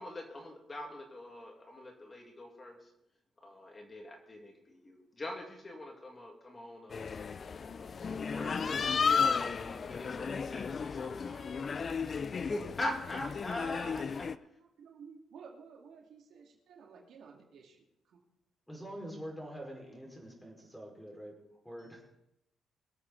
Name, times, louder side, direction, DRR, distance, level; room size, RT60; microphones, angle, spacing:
voice 1, 0.0-2.9 3.4-7.9 8.3-14.2 21.8-22.0, left 1 dB, 25° left, 2.4 m, -43 dB
sound 1, 6.9-14.4, left 5 dB, 45° left, 0.5 m, -34 dB
voice 2, 14.6-18.2, right 6 dB, 70° right, 2.7 m, -54 dB
voice 3, 18.7-21.3 21.6-22.0, equal, 5° left, 5.2 m, -45 dB
23.0 x 8.3 x 4.2 m
cardioid pair, 90°, 0 cm